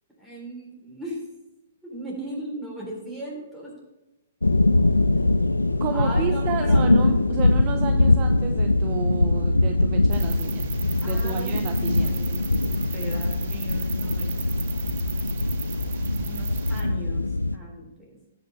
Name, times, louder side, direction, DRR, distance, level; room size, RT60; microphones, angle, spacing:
voice 1, 0.2-1.2 1.8-3.7 5.2-5.3 5.9-6.8 11.0-14.4 16.2-18.2, right 1 dB, ahead, -6 dB, 3.8 m, -38 dB
sound 1, 4.4-17.6, left 2 dB, 90° left, 0.5 m, -22 dB
voice 2, 5.8-10.7 11.0-12.4, right 11 dB, 35° right, 7 dB, 0.6 m, -33 dB
sound 2, 10.1-16.8, right 8 dB, 50° right, 1.0 m, -36 dB
16.5 x 5.9 x 3.5 m, 0.98 s
figure-of-eight pair, 120°, 0 cm